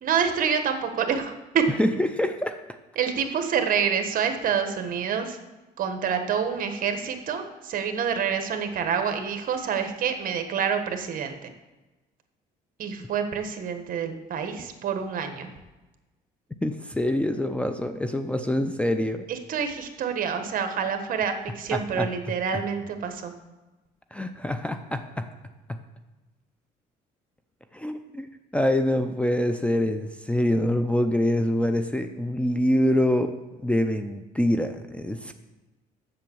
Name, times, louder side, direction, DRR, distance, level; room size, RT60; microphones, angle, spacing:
voice 1, 0.0-1.6 3.0-5.4 5.8-11.5 12.8-15.5 19.3-23.3, right 7 dB, 55° right, 7 dB, 1.3 m, -27 dB
voice 2, 1.8-2.6 16.6-19.3 21.7-22.1 22.5-22.6 24.1-25.3 25.7-25.8 27.7-28.3 28.5-33.3 33.6-35.3, left 1 dB, 5° left, 8 dB, 0.6 m, -25 dB
7.7 x 7.1 x 7.0 m, 1.1 s
cardioid pair, 110°, 17 cm